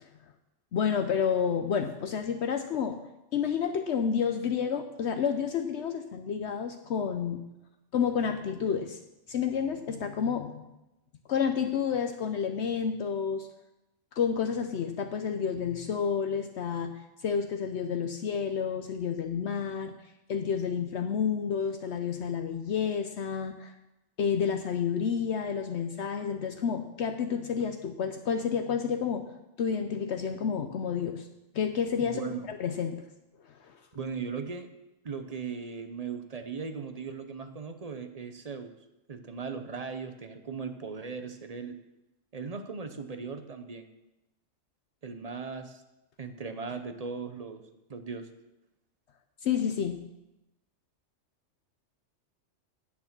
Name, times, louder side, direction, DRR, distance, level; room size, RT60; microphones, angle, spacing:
voice 1, 0.7-3.0 3.3-7.4 7.9-9.0 9.3-10.6 11.3-13.5 14.2-16.9 17.2-20.0 20.3-23.7 24.2-29.3 29.6-31.3 31.5-32.2 32.5-33.0 33.7-33.8 49.4-50.0, left 7 dB, 70° left, 6 dB, 0.9 m, -30 dB
voice 2, 32.0-32.5 33.9-34.7 35.0-38.7 39.1-41.8 42.3-43.9 45.0-45.8 46.2-47.6 47.9-48.3, right 5 dB, 35° right, 8 dB, 0.8 m, -38 dB
9.6 x 8.8 x 6.0 m, 0.96 s
omnidirectional pair, 1.2 m